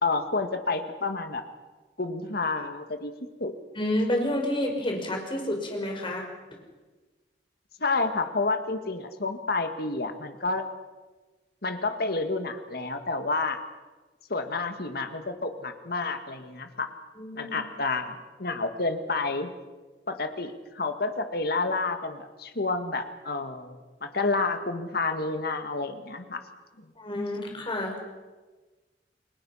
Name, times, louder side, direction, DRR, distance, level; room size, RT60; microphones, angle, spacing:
voice 1, 0.0-1.4 2.0-3.1 3.4-3.5 7.8-10.6 11.6-13.6 14.3-16.9 17.3-19.5 20.1-26.4 26.8-26.9 27.1-27.3, left 3 dB, 60° left, 7 dB, 2.0 m, -29 dB
voice 2, 3.8-6.3 17.2-17.6 27.0-28.0, left 1 dB, 30° left, 2 dB, 5.2 m, -29 dB
29.5 x 21.0 x 5.8 m, 1.3 s
head